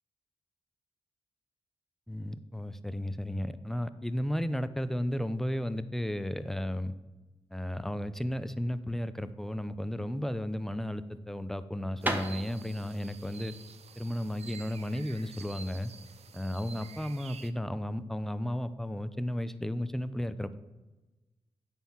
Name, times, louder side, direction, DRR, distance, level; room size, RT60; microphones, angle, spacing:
voice 1, 2.1-6.9 7.5-13.5 14.0-15.9 16.3-20.6, equal, 5° left, 13 dB, 0.6 m, -34 dB
sound 1, 10.2-15.8, right 1 dB, 15° right, 1.3 m, -38 dB
sound 2, 12.0-17.5, right 7 dB, 70° right, 0.6 m, -50 dB
9.2 x 4.6 x 7.2 m, 1.1 s
cardioid pair, 50°, 11 cm